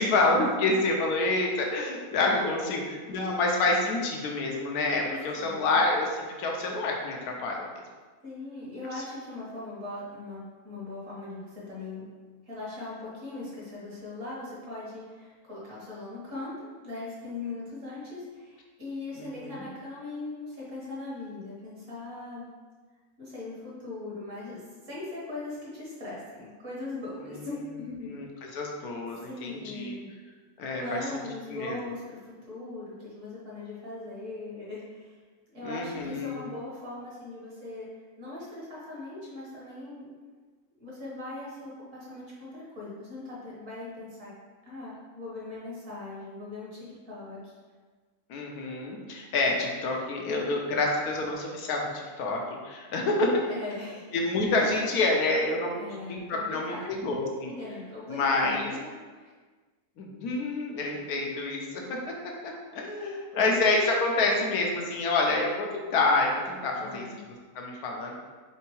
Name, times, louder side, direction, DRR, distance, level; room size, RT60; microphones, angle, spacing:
voice 1, 0.0-2.8 3.1-7.6 19.2-19.6 27.2-27.5 28.1-28.3 28.5-30.0 30.6-31.0 31.5-31.8 35.6-36.4 48.3-53.3 54.1-55.7 56.1-57.5 58.1-58.7 60.0-62.0 62.4-65.7 65.9-67.0 67.6-68.2, left 2 dB, 80° left, 0 dB, 1.2 m, -27 dB
voice 2, 2.4-2.8 3.1-3.3 5.4-5.8 8.2-12.1 12.5-22.5 23.2-28.1 28.4-28.5 29.3-30.1 30.8-35.2 35.5-37.9 38.2-40.1 40.8-44.3 44.6-47.5 50.3-50.5 53.3-54.0 55.7-56.9 57.5-59.3 66.8-67.2, left 2 dB, 55° right, -7 dB, 1.8 m, -40 dB
4.4 x 3.8 x 3.0 m, 1.4 s
omnidirectional pair, 1.6 m